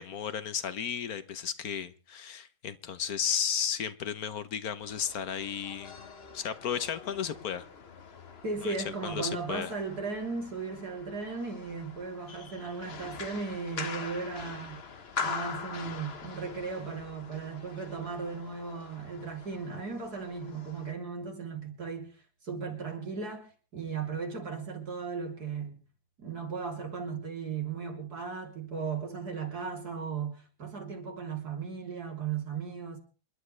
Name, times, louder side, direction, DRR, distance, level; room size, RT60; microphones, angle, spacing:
voice 1, 0.0-6.0 6.3-7.7 8.6-8.7 9.0-9.7, left 8 dB, 65° left, 1.4 m, -34 dB
sound 1, 4.8-20.9, left 5 dB, 40° left, 1.4 m, -43 dB
voice 2, 8.4-14.8 15.2-22.1 22.4-25.8 26.2-33.0, right 5 dB, 70° right, 3.8 m, -36 dB
27.5 x 12.0 x 3.3 m
omnidirectional pair, 1.7 m